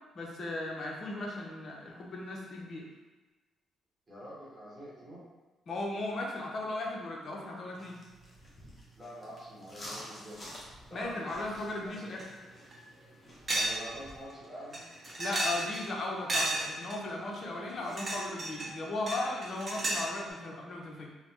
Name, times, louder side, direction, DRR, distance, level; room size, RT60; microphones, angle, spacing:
voice 1, 0.1-2.9 5.7-8.0 10.9-12.2 15.2-21.1, left 2 dB, 50° left, -1 dB, 0.6 m, -37 dB
voice 2, 4.1-5.2 8.9-10.4 10.9-12.1 13.5-14.8, equal, 15° right, -10 dB, 1.0 m, -46 dB
sound 1, 7.8-14.3, equal, 20° left, 0.8 m, -50 dB
sound 2, 12.2-12.3 12.7-12.8 13.5-13.8 14.1-14.2 14.7-15.9 16.3-17.0 17.7-18.7 19.1-20.1, right 1 dB, 40° right, 0.7 m, -32 dB
3.2 x 2.0 x 2.9 m, 1.2 s
cardioid pair, 90°, 0 cm